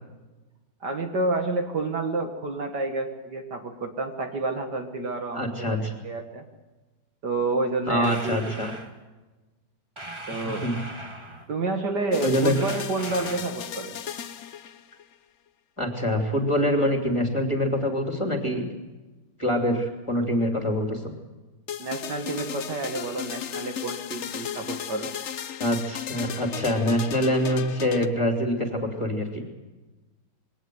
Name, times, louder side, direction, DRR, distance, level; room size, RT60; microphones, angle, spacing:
voice 1, 0.8-6.4 7.2-8.5 10.3-10.7 11.5-13.9 21.8-25.1, right 3 dB, 55° right, 5 dB, 2.1 m, -29 dB
voice 2, 5.3-5.9 7.9-8.7 10.6-10.8 12.2-12.5 15.8-18.7 19.4-21.1 25.6-29.4, equal, 15° left, 3 dB, 3.0 m, -25 dB
sound 1, 8.0-8.9 10.0-11.5 12.5-13.6, right 1 dB, 15° right, 1.8 m, -40 dB
sound 2, 12.1-15.1 21.7-28.1, left 8 dB, 65° left, 0.7 m, -36 dB
22.0 x 18.0 x 7.9 m, 1.2 s
omnidirectional pair, 2.3 m